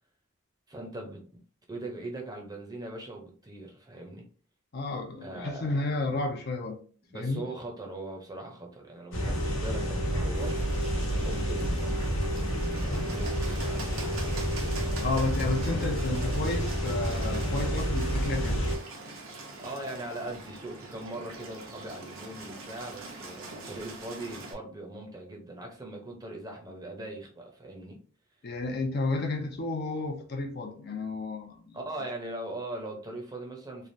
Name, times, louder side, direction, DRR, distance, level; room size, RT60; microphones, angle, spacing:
voice 1, 0.7-1.4 1.7-4.2 5.2-5.8 7.1-10.6 11.2-14.6 19.6-28.0 31.7-33.9, right 2 dB, 20° right, 0.6 m, -40 dB
voice 2, 4.7-6.8 7.1-7.4 15.0-18.6 28.4-32.1, left 3 dB, 50° left, 0.5 m, -32 dB
sound 1, 9.1-18.8, equal, 80° left, 1.0 m, -29 dB
Bird, 10.3-24.5, right 3 dB, 90° right, 0.8 m, -44 dB
3.2 x 2.4 x 2.6 m
head